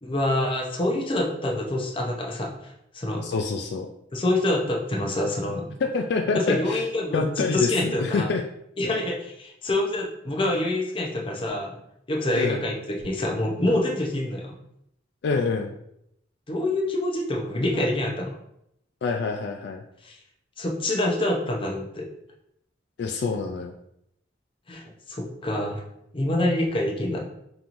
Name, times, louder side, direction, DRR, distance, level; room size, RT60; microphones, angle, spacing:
voice 1, 0.0-3.2 4.1-5.7 6.5-8.3 8.8-11.8 12.1-14.5 16.5-18.3 20.0-20.2 20.6-22.1 24.7-25.8 26.1-27.2, left 1 dB, 30° left, 0 dB, 0.7 m, -26 dB
voice 2, 3.2-3.9 5.8-6.8 7.1-8.4 8.8-9.0 12.3-12.6 15.2-15.7 19.0-19.8 23.0-23.7, left 4 dB, 65° left, 4 dB, 0.3 m, -26 dB
5.3 x 3.0 x 2.5 m, 0.77 s
head